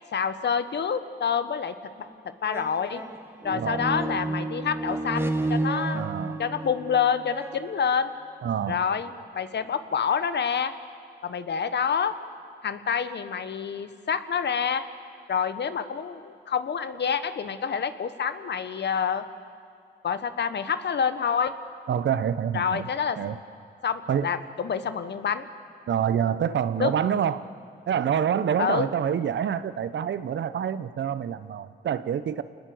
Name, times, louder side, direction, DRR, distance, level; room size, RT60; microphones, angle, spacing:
voice 1, 0.1-2.1 2.4-3.0 3.4-6.0 6.4-8.1 8.7-10.7 11.2-12.1 12.6-14.8 15.3-19.2 20.0-21.5 22.5-23.2 23.8-25.5 26.8-26.9 28.6-28.9, left 7 dB, 60° left, 11 dB, 1.4 m, -27 dB
sound 1, 2.0-2.1 2.4-8.3 9.0-9.1, right 2 dB, 10° right, 1.9 m, -31 dB
voice 2, 3.5-3.9 5.9-6.4 8.4-8.8 21.9-22.9 23.2-23.4 24.1-24.3 25.9-27.4 27.9-32.4, right 8 dB, 70° right, 13 dB, 1.0 m, -27 dB
27.5 x 20.0 x 8.0 m, 2.4 s
cardioid pair, 65°, 20 cm